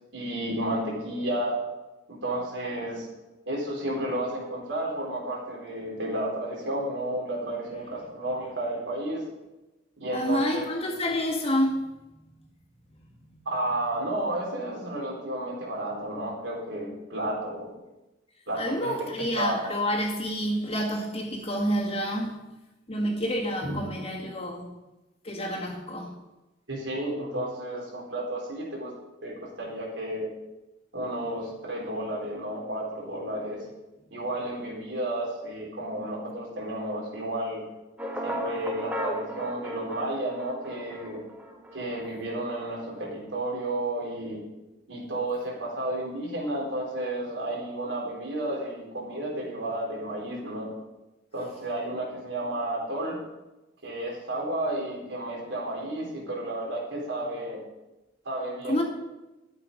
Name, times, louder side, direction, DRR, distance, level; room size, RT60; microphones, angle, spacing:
voice 1, 0.1-1.5 2.1-3.1 3.5-9.2 10.0-10.6 13.5-17.7 18.5-18.9 19.4-19.6 23.6-23.7 26.7-28.9 29.2-30.3 30.9-33.6 34.1-37.6 38.2-41.2 41.7-44.4 44.9-50.7 51.3-53.2 53.8-57.6 58.2-58.8, right 1 dB, 70° right, 4.2 m, -32 dB
voice 2, 10.1-11.9 13.1-13.4 18.6-22.4 22.9-24.8 25.2-26.2 58.6-58.8, equal, 30° left, 2.1 m, -28 dB
sound 1, 38.0-42.2, equal, 10° right, 1.4 m, -35 dB
13.0 x 8.2 x 5.4 m
head